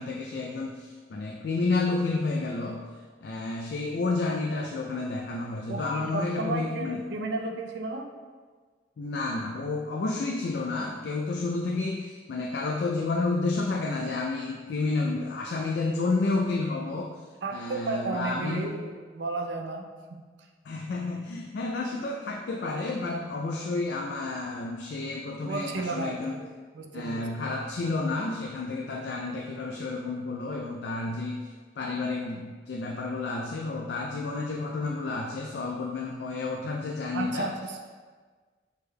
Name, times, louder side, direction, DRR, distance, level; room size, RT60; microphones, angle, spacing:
voice 1, 0.0-2.9 3.2-7.0 9.0-17.2 17.5-18.7 20.6-26.4 26.9-31.5 31.8-37.5, left 3 dB, 70° left, 0 dB, 0.3 m, -30 dB
voice 2, 5.7-8.1 17.4-20.2 25.4-26.4 26.7-27.2 37.1-37.8, right 3 dB, 90° right, 3 dB, 0.5 m, -33 dB
6.1 x 3.3 x 2.2 m, 1.5 s
head